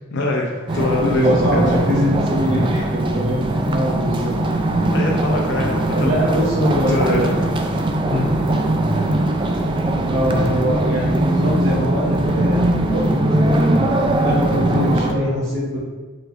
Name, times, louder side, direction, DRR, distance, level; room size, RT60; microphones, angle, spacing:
voice 1, 0.1-1.2 1.5-1.9 4.9-6.5 6.9-7.2 8.1-8.3, left 2 dB, 65° left, -1 dB, 0.6 m, -24 dB
sound 1, 0.7-15.1, right 1 dB, 25° right, 0.4 m, -20 dB
voice 2, 0.7-4.3 5.9-7.3 10.1-15.8, equal, 70° right, -8 dB, 0.9 m, -23 dB
4.8 x 3.9 x 2.5 m, 1.4 s
head